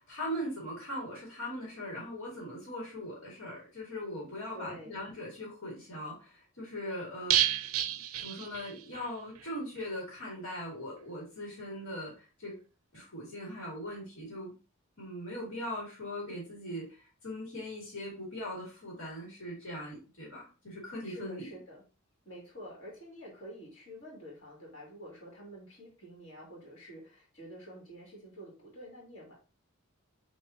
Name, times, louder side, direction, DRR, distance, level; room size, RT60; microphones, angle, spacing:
voice 1, 0.0-7.3 7.9-12.6 12.9-14.5 15.0-21.5, equal, 80° left, -4 dB, 1.9 m, -40 dB
voice 2, 4.5-5.0 21.0-21.8 22.2-29.3, equal, 60° left, -3 dB, 2.3 m, -48 dB
sound 1, 7.3-9.1 9.4-9.5 9.8-9.9, right 11 dB, 90° right, 0.5 m, -30 dB
6.6 x 2.9 x 2.7 m, 0.33 s
head